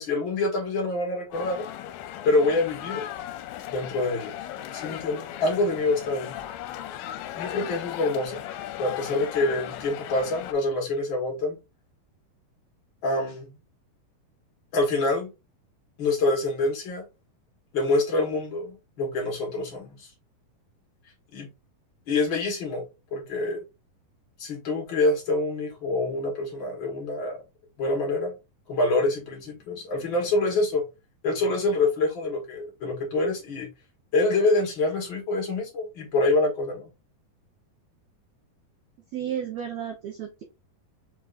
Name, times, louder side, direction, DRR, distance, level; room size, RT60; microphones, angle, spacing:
voice 1, 0.0-1.6 2.2-3.0 3.7-4.3 4.7-6.4 7.3-8.4 8.8-11.6 13.0-13.5 14.7-15.3 16.0-17.0 17.7-20.1 21.3-21.5 22.1-22.8 23.1-23.6 24.4-27.4 27.8-28.3 28.7-30.8 31.2-33.7 34.1-36.9, left 2 dB, 60° left, 1.3 m, -26 dB
sound 1, 1.3-10.5, left 11 dB, 80° left, 2.3 m, -37 dB
voice 2, 39.1-40.4, right 9 dB, 75° right, 1.6 m, -33 dB
5.5 x 3.6 x 2.5 m
omnidirectional pair, 4.2 m